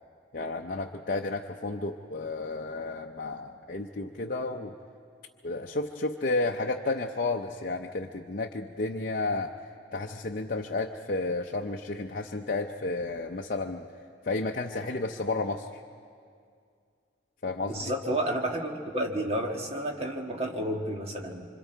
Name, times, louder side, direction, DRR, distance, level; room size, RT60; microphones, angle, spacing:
voice 1, 0.3-4.7 5.4-9.5 9.9-13.9 14.2-15.8 17.4-17.8, left 2 dB, 45° left, 1 dB, 0.7 m, -32 dB
voice 2, 17.7-21.5, right 1 dB, 30° right, 1 dB, 1.7 m, -31 dB
26.0 x 26.0 x 4.6 m, 2.3 s
head